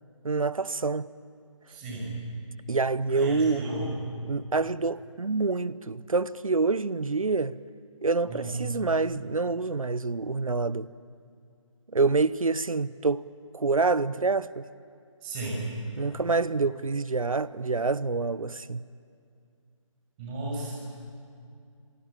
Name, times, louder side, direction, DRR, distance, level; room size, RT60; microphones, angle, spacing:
voice 1, 0.2-1.1 2.7-3.6 4.2-7.6 8.0-10.9 11.9-13.2 13.5-14.7 16.0-18.8, right 4 dB, 90° right, 0.9 m, -27 dB
voice 2, 1.7-2.2 3.1-3.9 8.3-8.6 15.2-15.7 20.2-20.7, right 2 dB, 20° right, 6.0 m, -34 dB
27.5 x 19.0 x 9.0 m
figure-of-eight pair, 160°, 17 cm